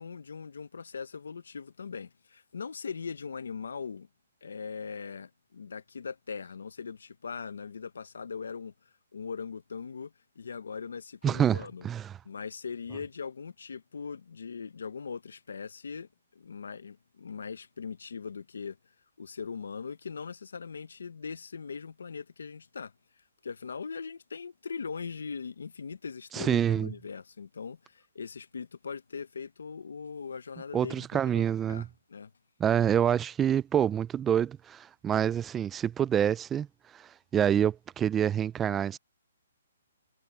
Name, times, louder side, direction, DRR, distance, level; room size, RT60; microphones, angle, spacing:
voice 1, 0.0-4.1 4.4-8.7 9.1-11.9 12.2-18.8 19.2-22.9 23.4-32.3, left 5 dB, 80° left, 0.9 m, -40 dB
voice 2, 11.2-12.1 26.3-26.9 30.7-31.8 32.6-36.7 36.9-39.0, right 9 dB, 10° right, 0.3 m, -27 dB
hypercardioid pair, 170°, 0 cm